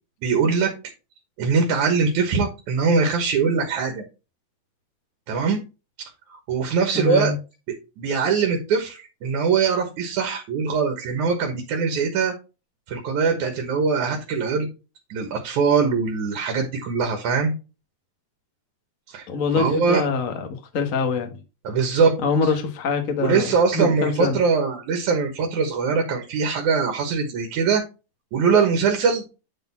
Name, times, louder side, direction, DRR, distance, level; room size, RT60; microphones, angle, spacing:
voice 1, 0.2-0.7 1.4-4.0 5.3-5.6 6.3-7.3 8.0-12.3 12.9-14.7 15.1-17.5 19.1-19.3 19.6-20.0 21.6-22.1 22.4-22.5 23.2-27.8 28.3-29.2, right 5 dB, 80° right, 2.8 m, -22 dB
voice 2, 6.9-7.4 19.3-20.5 20.7-21.3 22.2-24.4, left 4 dB, 55° left, 0.9 m, -24 dB
10.0 x 4.0 x 4.2 m
omnidirectional pair, 3.4 m